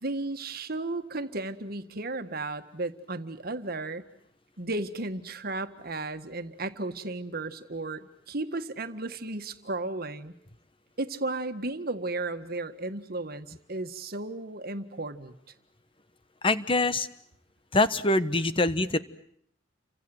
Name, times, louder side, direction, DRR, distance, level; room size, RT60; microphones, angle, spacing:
voice 1, 0.0-4.1 4.6-10.3 11.0-15.3, right 2 dB, 55° right, 8 dB, 1.7 m, -34 dB
voice 2, 16.4-17.1 17.7-19.0, left 2 dB, 30° left, 12 dB, 1.2 m, -24 dB
30.0 x 25.5 x 7.9 m, 0.69 s
head